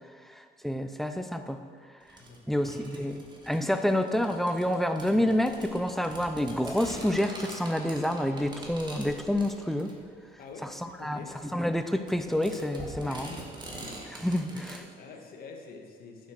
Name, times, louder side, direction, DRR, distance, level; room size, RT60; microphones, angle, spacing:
voice 1, 0.3-1.6 2.5-9.9 10.8-11.2 11.5-13.3 14.1-14.8, left 1 dB, ahead, 8 dB, 0.7 m, -28 dB
sound 1, 2.1-14.8, right 1 dB, 25° right, 2.0 m, -45 dB
voice 2, 2.2-2.6 10.4-10.7 11.0-11.3 13.0-13.8 15.0-16.3, left 4 dB, 60° left, 2 dB, 1.8 m, -46 dB
sound 2, 5.3-6.6 7.0-10.5 11.5-13.4 13.9-14.8, left 1 dB, 35° left, 2.7 m, -52 dB
11.0 x 6.4 x 6.4 m, 2.2 s
cardioid pair, 110°, 17 cm